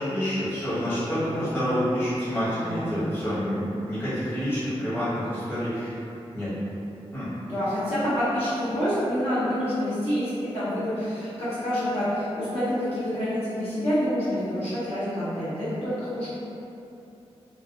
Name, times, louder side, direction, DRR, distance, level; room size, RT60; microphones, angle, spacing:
voice 1, 0.0-5.9 6.3-6.5 7.1-7.3, equal, 20° left, -14 dB, 1.0 m, -28 dB
voice 2, 7.4-16.3, equal, 65° left, -14 dB, 1.0 m, -27 dB
2.4 x 2.2 x 2.5 m, 2.8 s
wide cardioid pair, 170°, 11 cm